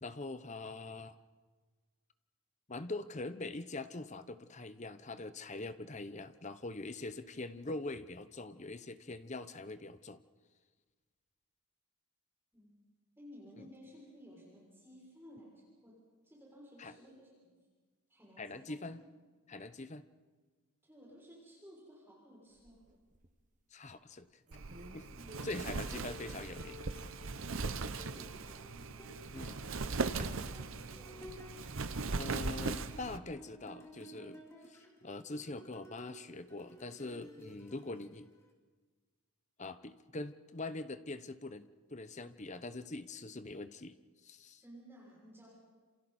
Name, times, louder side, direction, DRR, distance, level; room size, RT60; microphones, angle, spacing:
voice 1, 0.0-1.2 2.7-10.2 13.6-13.7 16.8-16.9 18.4-19.0 19.5-20.0 23.7-24.3 24.9-25.1 25.4-26.8 29.3-29.6 32.2-38.3 39.6-44.0 44.2-44.6, left 2 dB, 30° left, 12 dB, 0.8 m, -43 dB
voice 2, 13.2-17.3 18.1-18.9 20.8-22.8 25.1-25.5 27.9-29.8 30.4-31.4 44.6-45.5, equal, 10° right, -5 dB, 6.5 m, -56 dB
sound 1, 22.5-23.5 24.0-24.1 24.5-27.1 27.4-28.2 29.4-31.1 31.6-32.2, right 1 dB, 35° right, 1.3 m, -54 dB
Wind, 24.5-33.2, right 4 dB, 60° right, 0.8 m, -39 dB
sound 2, 25.4-38.5, equal, 10° left, 2.4 m, -55 dB
27.5 x 27.5 x 4.3 m, 1.4 s
head